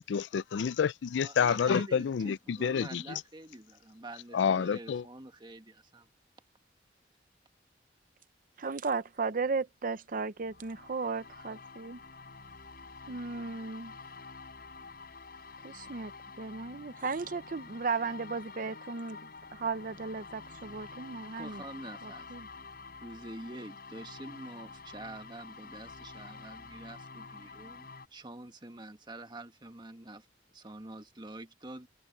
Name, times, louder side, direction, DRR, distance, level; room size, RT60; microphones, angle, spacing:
voice 1, 0.1-2.3 2.6-3.0 4.3-5.0, left 6 dB, 85° left, 0.4 m, -28 dB
voice 2, 1.2-6.1 21.4-22.3 23.0-30.3 30.5-31.9, right 2 dB, 25° right, 1.7 m, -46 dB
voice 3, 8.6-12.0 13.1-13.9 15.6-16.1 16.4-19.2 19.5-21.6 22.0-22.5, right 4 dB, 50° right, 0.7 m, -35 dB
sound 1, 10.4-28.1, left 4 dB, 55° left, 4.4 m, -48 dB
head